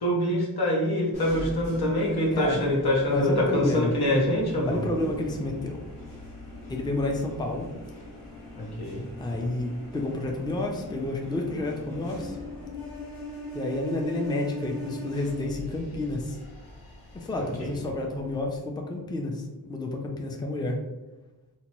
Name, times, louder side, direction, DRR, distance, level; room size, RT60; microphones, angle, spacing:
voice 1, 0.0-4.8 8.5-9.1 17.6-17.7, left 1 dB, 80° left, -2 dB, 0.8 m, -25 dB
sound 1, 1.1-18.6, equal, 55° left, 1.0 m, -41 dB
voice 2, 3.1-3.9 4.7-5.8 6.7-7.7 9.2-12.4 13.5-16.4 17.1-20.8, left 2 dB, 10° left, 1 dB, 0.4 m, -30 dB
2.8 x 2.1 x 3.0 m, 1.1 s
wide cardioid pair, 55°, 38 cm